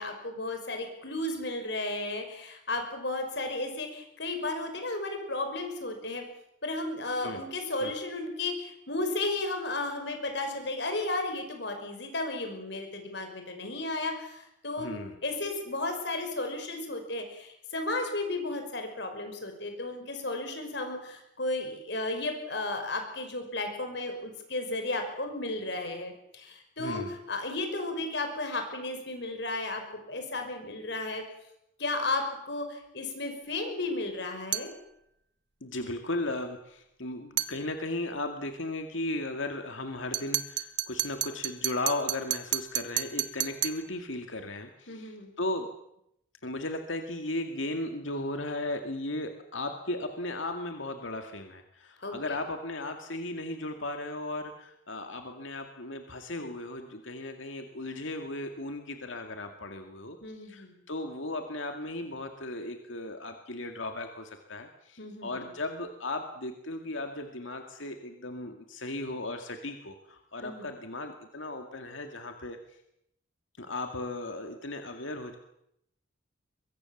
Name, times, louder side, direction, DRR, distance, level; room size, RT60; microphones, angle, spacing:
voice 1, 0.0-6.2 6.6-14.9 15.2-31.2 31.8-34.7 44.9-45.3 52.0-52.4 60.2-60.7 65.0-65.4 70.4-70.7, left 2 dB, 60° left, 5 dB, 5.7 m, -34 dB
voice 2, 14.8-15.2 26.8-27.1 35.6-45.7 46.4-72.6 73.6-75.4, left 2 dB, 75° left, 5 dB, 2.2 m, -36 dB
sound 1, 34.5-34.8 37.4-37.6 40.1-43.9, right 12 dB, 60° right, 1.2 m, -32 dB
23.5 x 22.5 x 7.3 m, 0.78 s
head